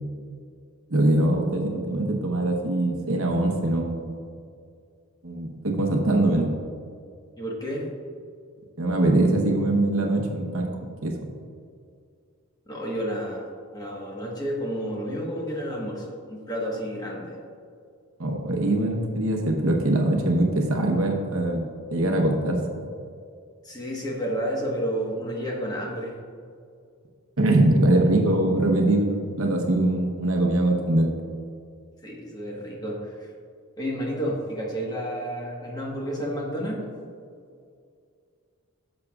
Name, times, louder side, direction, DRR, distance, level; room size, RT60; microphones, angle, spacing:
voice 1, 0.9-4.2 5.2-6.5 8.8-10.7 11.0-11.2 18.2-22.6 27.4-31.1, right 1 dB, 65° right, 1 dB, 1.0 m, -22 dB
voice 2, 7.4-7.9 12.7-17.4 23.6-26.1 32.0-33.3 33.8-36.9, equal, 20° left, -3 dB, 1.3 m, -31 dB
10.5 x 7.0 x 2.4 m, 2.3 s
head